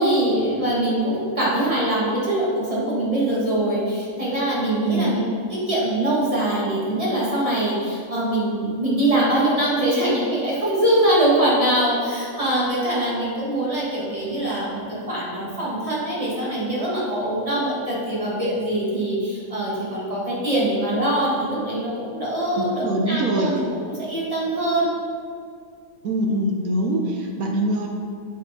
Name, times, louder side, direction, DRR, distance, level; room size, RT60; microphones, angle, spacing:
voice 1, 0.0-5.2 5.5-24.9, right 1 dB, 20° right, -7 dB, 1.4 m, -23 dB
voice 2, 22.6-23.5 26.0-27.9, right 1 dB, 65° right, 1 dB, 0.9 m, -23 dB
7.8 x 4.8 x 4.1 m, 2.2 s
omnidirectional pair, 2.1 m